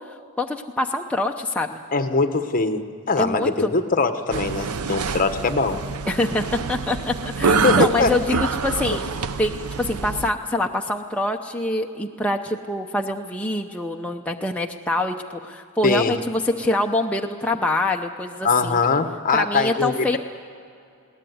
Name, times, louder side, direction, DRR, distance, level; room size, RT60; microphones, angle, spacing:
voice 1, 0.0-1.8 3.2-3.7 6.1-9.0 9.4-15.2 15.4-18.8 19.3-20.2, left 1 dB, 5° left, 1 dB, 0.7 m, -25 dB
voice 2, 1.9-5.8 7.6-8.1 15.8-16.1 18.4-20.2, left 4 dB, 40° left, 8 dB, 1.2 m, -22 dB
sound 1, 4.3-10.3, right 4 dB, 90° right, 0.7 m, -25 dB
21.5 x 18.0 x 9.4 m, 2.4 s
head